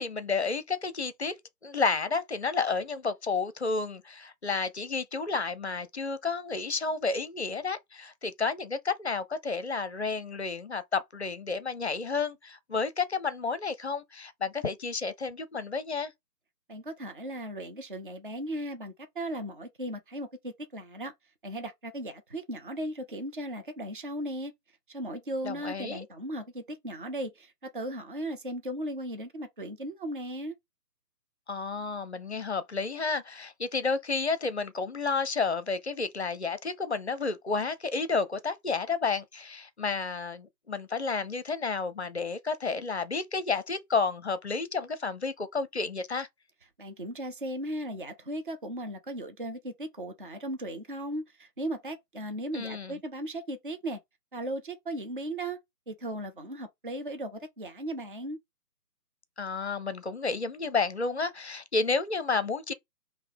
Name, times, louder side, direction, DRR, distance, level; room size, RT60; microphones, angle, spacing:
voice 1, 0.0-1.3 1.6-16.1 25.4-26.0 31.5-46.3 52.5-53.0 59.4-62.7, left 4 dB, 45° left, 0.6 m, -31 dB
voice 2, 16.7-21.1 21.4-24.5 24.9-30.5 46.8-54.0 54.3-55.6 55.9-58.4, right 1 dB, 35° right, 0.6 m, -37 dB
5.3 x 2.8 x 3.4 m
figure-of-eight pair, 155°, 49 cm